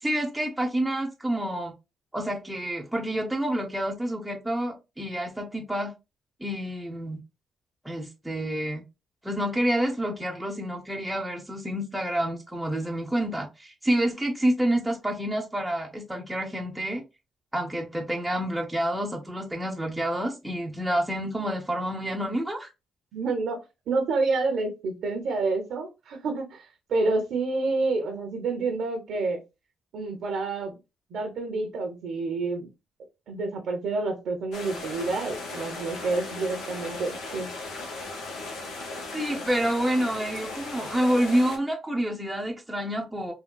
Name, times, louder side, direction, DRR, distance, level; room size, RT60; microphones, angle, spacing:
voice 1, 0.0-1.7 2.1-5.9 6.4-7.2 7.8-8.8 9.2-17.0 17.5-22.7 39.1-43.3, right 1 dB, 5° right, 0.6 m, -28 dB
voice 2, 23.1-23.6 23.9-29.4 29.9-30.7 31.1-32.7 33.3-37.5, right 3 dB, 70° right, 0.7 m, -28 dB
sound 1, 34.5-41.6, left 2 dB, 90° left, 0.8 m, -37 dB
3.6 x 2.2 x 2.2 m
cardioid pair, 90°, 0 cm